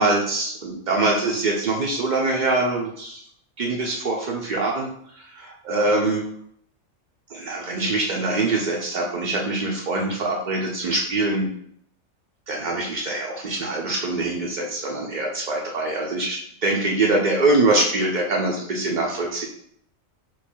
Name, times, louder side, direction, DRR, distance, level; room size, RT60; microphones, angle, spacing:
voice 1, 0.0-3.2 3.6-4.9 5.3-6.2 7.3-11.5 12.5-19.4, right 2 dB, 85° right, -1 dB, 0.4 m, -23 dB
3.2 x 2.2 x 4.3 m, 0.68 s
omnidirectional pair, 1.4 m